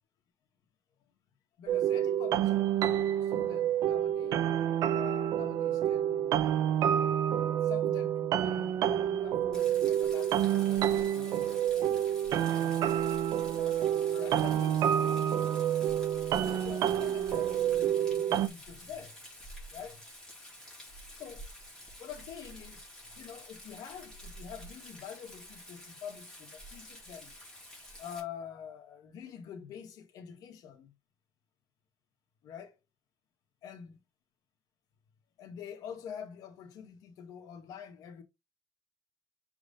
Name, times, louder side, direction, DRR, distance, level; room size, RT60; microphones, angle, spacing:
voice 1, 1.6-4.5 4.9-6.6 7.6-12.0 12.5-13.0 13.5-15.5 16.4-19.2 19.7-20.0 21.1-21.5 22.0-27.3 28.0-30.9 32.4-32.8 33.6-34.0 35.4-38.2, left 8 dB, 80° left, 1.7 m, -46 dB
sound 1, 1.7-18.5, right 10 dB, 75° right, 0.7 m, -28 dB
Rain, 9.5-28.2, equal, 10° left, 4.2 m, -49 dB
6.6 x 4.7 x 3.8 m
cardioid pair, 115°, 6 cm